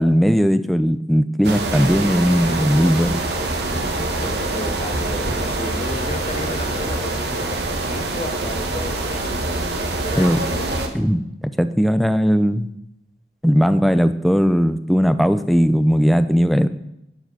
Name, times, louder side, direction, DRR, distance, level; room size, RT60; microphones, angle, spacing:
voice 1, 0.0-3.2 10.2-10.4 10.9-12.7 13.4-16.7, equal, ahead, 11 dB, 0.4 m, -18 dB
sound 1, 1.4-10.9, right 2 dB, 70° right, 1.2 m, -25 dB
voice 2, 4.2-9.3 10.0-10.6, left 2 dB, 30° left, 8 dB, 0.8 m, -33 dB
11.0 x 5.0 x 7.7 m, 0.83 s
head